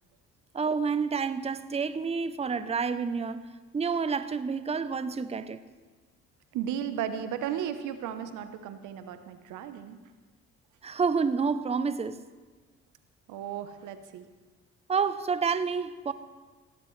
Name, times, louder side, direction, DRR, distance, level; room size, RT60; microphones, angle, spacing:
voice 1, 0.5-5.6 10.8-12.2 14.9-16.1, right 5 dB, 20° right, 0.6 m, -29 dB
voice 2, 6.5-10.0 13.3-14.2, right 9 dB, 80° right, 0.9 m, -35 dB
17.5 x 12.0 x 3.2 m
supercardioid pair, 65°, 30 cm